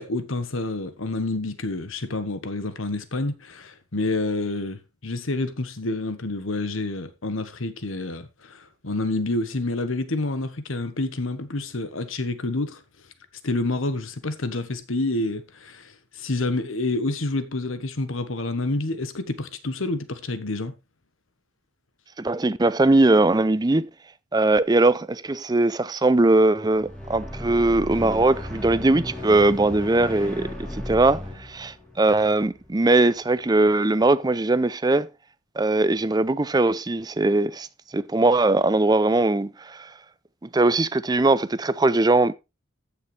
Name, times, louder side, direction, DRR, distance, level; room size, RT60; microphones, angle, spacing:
voice 1, 0.0-12.8 13.4-20.7, left 2 dB, 90° left, 1.3 m, -28 dB
voice 2, 22.2-23.9 24.3-35.1 35.6-37.7 37.9-39.9 40.5-42.3, right 2 dB, 20° right, 0.5 m, -20 dB
sound 1, 26.7-33.0, left 1 dB, 5° left, 3.4 m, -35 dB
14.0 x 6.6 x 3.3 m
head